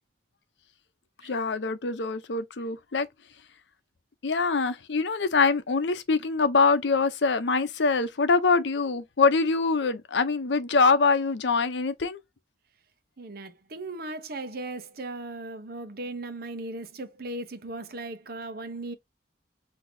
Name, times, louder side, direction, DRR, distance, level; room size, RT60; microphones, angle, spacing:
voice 1, 1.2-3.1 4.2-12.2, left 4 dB, 80° left, 0.7 m, -24 dB
voice 2, 13.2-18.9, right 2 dB, 55° right, 0.8 m, -37 dB
6.0 x 2.8 x 2.7 m
head